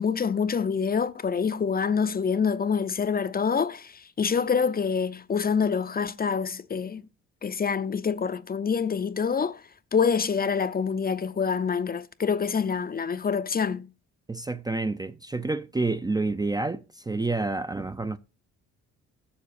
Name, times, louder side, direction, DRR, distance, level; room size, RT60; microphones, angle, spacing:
voice 1, 0.0-7.0 7.4-9.6 9.9-13.9, left 6 dB, 30° left, 0.6 m, -26 dB
voice 2, 14.3-18.2, right 3 dB, 15° right, 0.5 m, -29 dB
7.1 x 6.9 x 6.5 m
cardioid pair, 90°, 30 cm